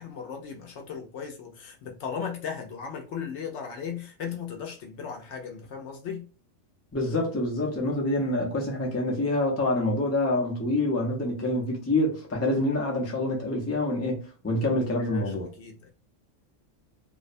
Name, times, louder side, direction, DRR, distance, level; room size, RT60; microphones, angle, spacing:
voice 1, 0.0-6.3 15.0-15.9, left 7 dB, 70° left, 0.8 m, -37 dB
voice 2, 6.9-14.2 14.4-15.5, left 1 dB, 20° left, 0.4 m, -26 dB
2.6 x 2.1 x 2.5 m
omnidirectional pair, 1.4 m